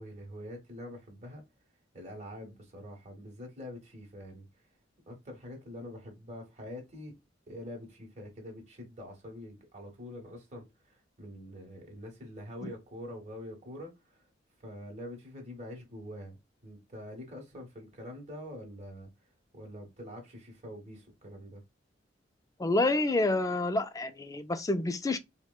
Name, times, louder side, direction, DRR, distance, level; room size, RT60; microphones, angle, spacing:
voice 1, 0.0-1.4 1.9-4.5 5.1-7.1 7.5-14.2 14.6-16.4 16.6-19.1 19.5-21.6, left 1 dB, 40° right, 1.3 m, -45 dB
voice 2, 22.6-25.2, left 2 dB, 20° left, 0.4 m, -28 dB
4.3 x 2.1 x 2.3 m
head